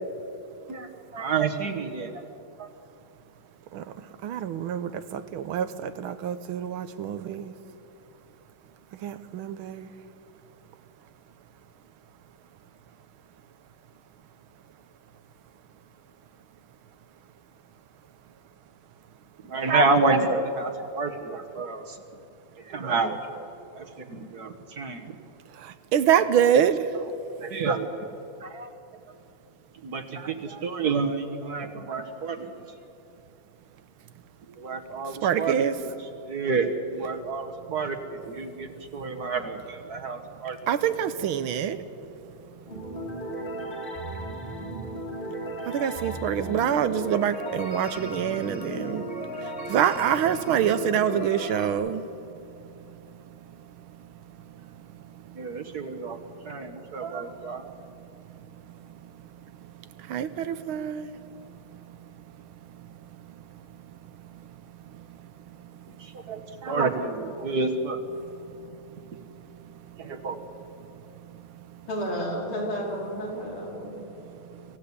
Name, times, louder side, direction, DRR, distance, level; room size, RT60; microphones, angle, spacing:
voice 1, 1.1-2.3 2.6-2.7 19.5-22.0 22.7-23.5 23.8-25.2 27.4-28.1 28.4-28.7 29.8-32.5 34.5-35.9 36.3-40.6 55.3-56.2 56.5-57.6 66.0-68.0 70.0-70.4, right 4 dB, 50° right, 5 dB, 1.7 m, -29 dB
voice 2, 3.7-7.5 8.9-9.9 25.5-26.9 35.0-35.8 39.1-39.2 39.9-40.0 40.3-66.7 67.4-67.5 68.2-71.9 73.4-73.5 73.7-74.8, right 9 dB, 80° right, 12 dB, 1.7 m, -30 dB
sound 1, 42.7-51.7, equal, 25° left, 2.9 m, -35 dB
voice 3, 71.9-74.0, equal, 75° left, -3 dB, 5.4 m, -31 dB
25.5 x 15.5 x 8.5 m, 2.8 s
omnidirectional pair, 2.3 m